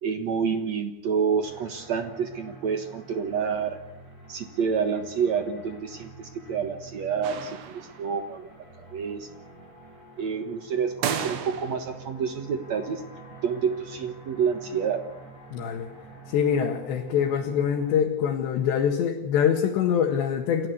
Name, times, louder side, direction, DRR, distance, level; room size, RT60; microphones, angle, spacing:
voice 1, 0.0-3.8 4.3-8.5 8.8-9.3 10.2-13.0 13.4-15.1, right 6 dB, 60° right, 7 dB, 1.9 m, -28 dB
sound 1, 1.4-18.0, right 3 dB, 20° right, 7.2 m, -47 dB
sound 2, 7.2-8.2 11.0-12.0, right 8 dB, 80° right, 3.9 m, -33 dB
voice 2, 15.5-15.9 16.3-20.7, left 8 dB, 80° left, 0 dB, 4.0 m, -24 dB
29.0 x 13.5 x 8.3 m, 0.81 s
omnidirectional pair, 5.0 m